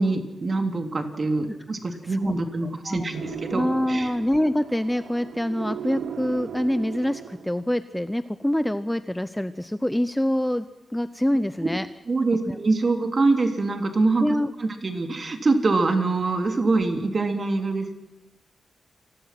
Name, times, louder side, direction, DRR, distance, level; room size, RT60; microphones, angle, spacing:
voice 1, 0.0-4.1 12.1-14.3 14.6-17.9, right 3 dB, 35° right, 6 dB, 3.3 m, -24 dB
voice 2, 2.0-2.3 2.8-3.1 3.5-11.9 12.5-12.6 14.2-14.5, left 1 dB, 5° left, 12 dB, 0.8 m, -25 dB
sound 1, 3.1-7.8, right 9 dB, 90° right, 1.0 m, -37 dB
28.5 x 20.5 x 6.0 m, 0.96 s
wide cardioid pair, 135°, 0 cm